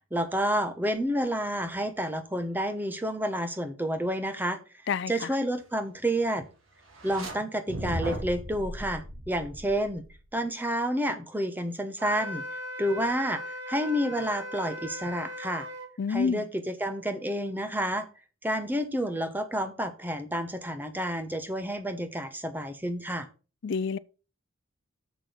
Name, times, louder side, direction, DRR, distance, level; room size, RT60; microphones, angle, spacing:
voice 1, 0.1-4.6 5.1-6.4 7.0-10.0 10.3-12.4 12.8-15.7 16.1-18.1 18.4-23.3, equal, 10° right, 1.0 m, -30 dB
voice 2, 4.9-5.4 16.0-16.4 23.6-24.0, left 5 dB, 60° left, 0.4 m, -28 dB
sound 1, 6.9-7.3 7.7-10.2, equal, 80° right, 2.5 m, -37 dB
Wind instrument woodwind instrument, 12.0-15.9, equal, 60° right, 1.9 m, -38 dB
6.9 x 6.0 x 6.0 m
head